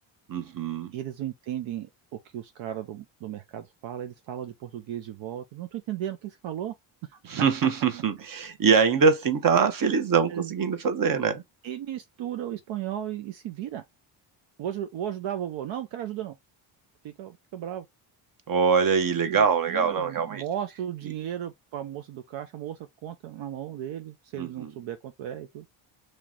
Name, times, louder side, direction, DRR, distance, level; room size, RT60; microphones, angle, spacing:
voice 1, 0.3-0.9 7.2-11.4 18.5-20.4 24.4-24.7, right 6 dB, 45° right, 1.0 m, -23 dB
voice 2, 0.9-1.9 2.3-6.7 7.1-7.2 10.3-10.5 11.6-13.8 14.6-16.4 17.0-17.9 19.3-25.7, right 11 dB, 70° right, 0.7 m, -35 dB
3.2 x 2.9 x 3.7 m
cardioid pair, 90°, 48 cm